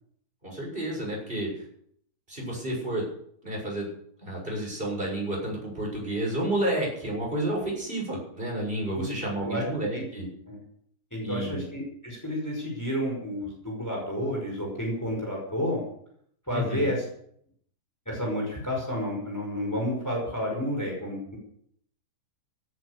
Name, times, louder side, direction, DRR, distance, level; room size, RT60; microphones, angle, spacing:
voice 1, 0.4-1.6 2.3-3.1 3.4-3.9 4.2-10.3 11.2-11.6 16.5-16.9, right 1 dB, 30° right, -2 dB, 7.1 m, -30 dB
voice 2, 11.1-15.8 16.5-17.0 18.1-21.4, equal, 10° left, -1 dB, 5.5 m, -30 dB
17.5 x 10.5 x 6.7 m, 0.66 s
omnidirectional pair, 1.7 m